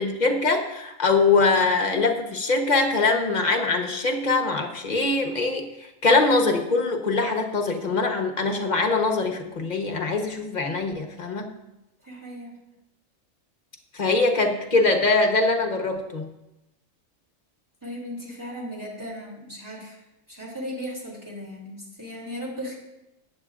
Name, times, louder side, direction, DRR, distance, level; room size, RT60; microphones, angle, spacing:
voice 1, 0.0-5.7 6.0-11.4 13.9-16.3, left 3 dB, 35° left, 3 dB, 1.1 m, -22 dB
voice 2, 12.0-12.5 17.8-20.0 20.3-22.7, equal, 15° right, -4 dB, 2.8 m, -36 dB
14.5 x 9.2 x 2.5 m, 0.92 s
omnidirectional pair, 1.4 m